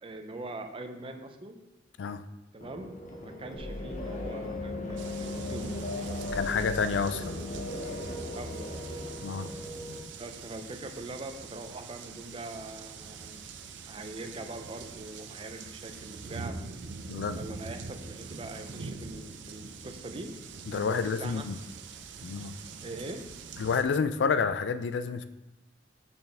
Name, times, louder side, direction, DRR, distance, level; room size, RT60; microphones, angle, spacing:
voice 1, 0.0-1.6 2.5-2.9 3.2-5.7 8.3-8.7 10.2-13.5 13.9-16.6 17.4-20.3 20.7-21.5 22.8-23.2, right 2 dB, 30° right, 6 dB, 0.6 m, -42 dB
sound 1, 2.6-10.0, left 2 dB, 40° left, 0.9 m, -37 dB
sound 2, 3.5-9.0, equal, 55° right, 1.1 m, -43 dB
sound 3, 5.0-23.8, right 4 dB, 75° right, 0.6 m, -44 dB
voice 2, 6.3-7.5 9.2-9.5 17.1-17.4 20.7-21.6 22.2-22.5 23.6-25.2, left 5 dB, 70° left, 12 dB, 0.4 m, -29 dB
6.6 x 5.6 x 3.4 m, 0.98 s
head